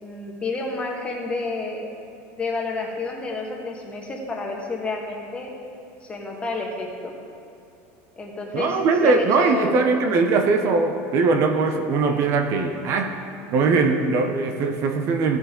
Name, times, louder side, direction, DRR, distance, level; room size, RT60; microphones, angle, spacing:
voice 1, 0.0-1.8 2.4-5.5 6.0-7.1 8.2-10.0 12.0-12.2, left 3 dB, 20° left, -1 dB, 1.5 m, -30 dB
voice 2, 8.5-13.1 13.5-15.4, right 4 dB, 45° right, 5 dB, 0.7 m, -21 dB
15.5 x 6.2 x 3.7 m, 2.7 s
supercardioid pair, 145°, 7 cm